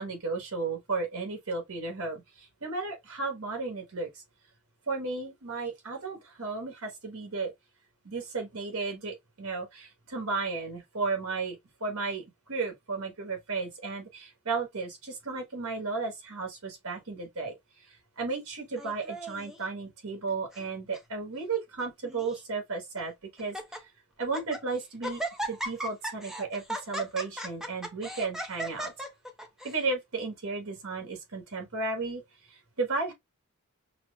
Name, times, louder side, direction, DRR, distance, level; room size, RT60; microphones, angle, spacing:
voice 1, 0.0-4.1 4.9-7.5 8.0-12.2 12.5-23.8 24.2-25.2 25.5-28.9 29.6-32.2 32.5-33.1, right 4 dB, 75° right, 1.5 m, -34 dB
Laughter, 18.8-19.6 20.3-20.7 20.9-21.0 21.8-22.4 23.0-23.1 23.4-23.8 24.2-24.6 25.0-29.8, right 1 dB, ahead, 0.6 m, -37 dB
5.8 x 2.1 x 2.3 m
head